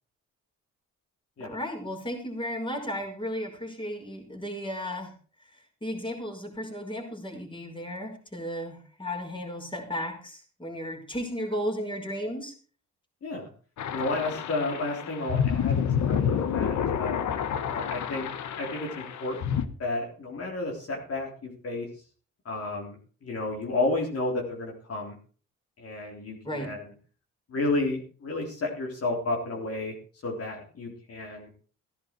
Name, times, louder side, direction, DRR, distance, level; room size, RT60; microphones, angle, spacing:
voice 1, 1.4-5.1 5.4-12.5 26.4-26.7, equal, 15° left, 2 dB, 5.1 m, -34 dB
sound 1, 13.8-19.7, left 8 dB, 70° left, 1.4 m, -29 dB
voice 2, 13.9-17.2 17.7-18.3 18.6-21.9 22.5-23.0 23.2-25.1 25.8-26.8 27.5-29.9 30.2-31.5, left 2 dB, 50° left, 0 dB, 3.9 m, -32 dB
15.5 x 10.5 x 4.6 m, 0.40 s
cardioid pair, 90°, 30 cm